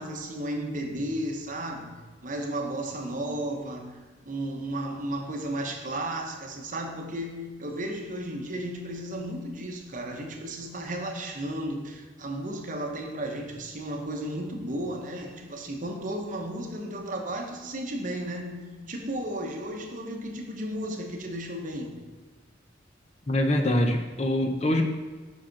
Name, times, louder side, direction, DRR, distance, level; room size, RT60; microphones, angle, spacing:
voice 1, 0.0-1.9 2.2-22.0, right 1 dB, 40° right, 3 dB, 0.9 m, -34 dB
voice 2, 23.3-24.8, left 1 dB, 35° left, 5 dB, 0.5 m, -24 dB
5.7 x 5.0 x 5.8 m, 1.3 s
head